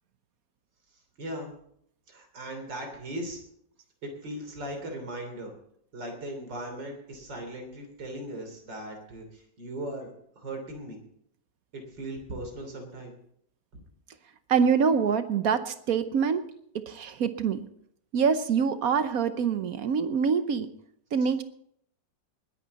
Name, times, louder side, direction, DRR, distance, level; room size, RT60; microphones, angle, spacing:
voice 1, 1.2-1.5 2.1-3.4 4.0-5.5 5.9-10.1 10.4-11.0 11.7-13.1 13.7-13.8 21.2-21.3, right 1 dB, 85° right, 3 dB, 3.8 m, -38 dB
voice 2, 14.5-16.4 16.9-17.7 18.1-20.7 21.1-21.4, right 6 dB, 60° right, 11 dB, 1.2 m, -25 dB
20.0 x 11.0 x 4.1 m, 0.70 s
omnidirectional pair, 1.9 m